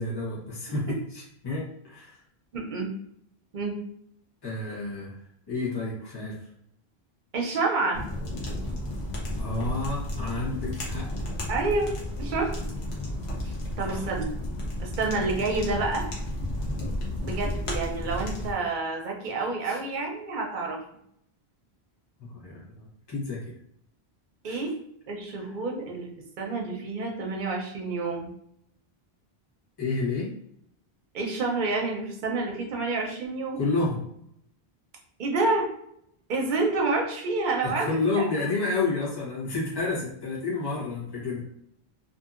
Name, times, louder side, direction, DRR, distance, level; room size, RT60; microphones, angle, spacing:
voice 1, 0.0-2.2 4.4-5.1 5.5-6.4 9.4-11.1 13.6-14.0 19.6-19.8 22.2-23.4 24.4-24.6 29.8-30.3 33.5-34.0 37.6-41.5, left 3 dB, 25° left, -7 dB, 0.9 m, -30 dB
voice 2, 2.5-2.9 3.5-3.8 7.3-8.0 11.5-11.9 12.2-12.5 13.4-14.3 14.8-16.0 17.2-20.8 24.4-24.7 25.1-26.1 26.4-28.3 31.1-33.6 35.2-35.7 36.3-37.9 38.2-38.3, right 3 dB, 55° right, 0 dB, 0.7 m, -28 dB
sound 1, 7.9-18.5, left 1 dB, 90° left, 1.1 m, -32 dB
2.7 x 2.6 x 2.4 m, 0.72 s
omnidirectional pair, 1.1 m